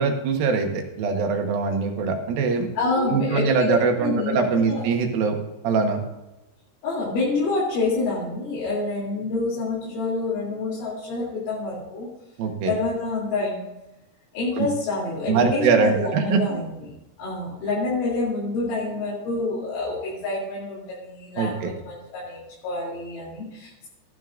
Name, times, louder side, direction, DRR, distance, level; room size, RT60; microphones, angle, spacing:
voice 1, 0.0-2.7 3.0-5.4 5.6-6.0 12.4-12.7 14.6-14.7 15.3-16.6 21.4-21.7, right 4 dB, 65° right, 3 dB, 2.5 m, -22 dB
voice 2, 2.8-4.9 6.8-12.1 12.7-13.6 14.3-16.7 17.2-23.9, left 3 dB, 75° left, -6 dB, 5.5 m, -27 dB
14.0 x 12.5 x 2.5 m, 0.99 s
omnidirectional pair, 5.5 m